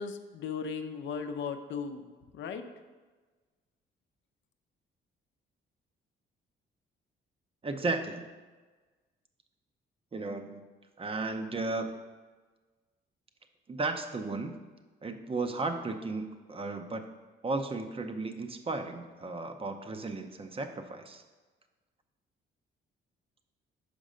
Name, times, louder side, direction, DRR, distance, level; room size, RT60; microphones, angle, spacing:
voice 1, 0.0-2.1 2.3-2.7, left 6 dB, 70° left, 7 dB, 0.6 m, -36 dB
voice 2, 7.6-8.3 10.1-10.6 11.0-12.0 13.7-14.5 15.0-17.0 17.4-21.2, right 3 dB, 30° right, 7 dB, 0.6 m, -34 dB
5.4 x 5.2 x 5.0 m, 1.3 s
cardioid pair, 90°, 20 cm